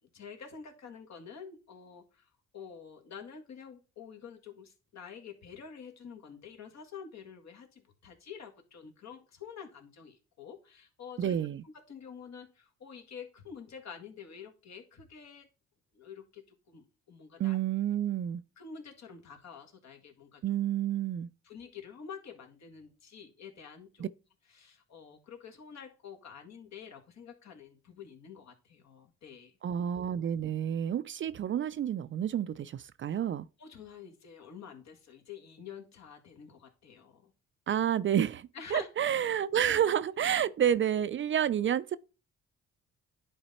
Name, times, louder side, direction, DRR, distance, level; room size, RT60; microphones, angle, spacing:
voice 1, 0.1-11.4 11.6-15.5 15.9-17.6 18.6-20.4 21.4-24.1 24.5-29.5 33.6-37.3 38.5-39.1, left 7 dB, 60° left, 1.9 m, -48 dB
voice 2, 11.2-11.6 17.4-18.4 20.4-21.3 24.0-24.1 29.6-33.5 37.7-42.0, right 9 dB, 40° right, 0.4 m, -29 dB
10.0 x 4.0 x 4.2 m
cardioid pair, 90°, 30 cm